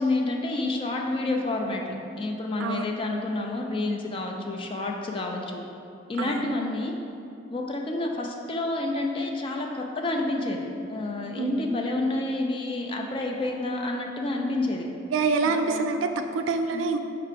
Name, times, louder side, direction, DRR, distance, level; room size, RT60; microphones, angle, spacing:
voice 1, 0.0-5.6 6.1-6.9 7.5-14.9 15.5-15.8 16.7-16.9, left 2 dB, 25° left, 1 dB, 0.3 m, -29 dB
voice 2, 2.6-2.9 6.2-6.5 11.3-11.6 15.1-17.0, right 4 dB, 80° right, 7 dB, 0.3 m, -26 dB
4.6 x 2.5 x 4.6 m, 2.7 s
head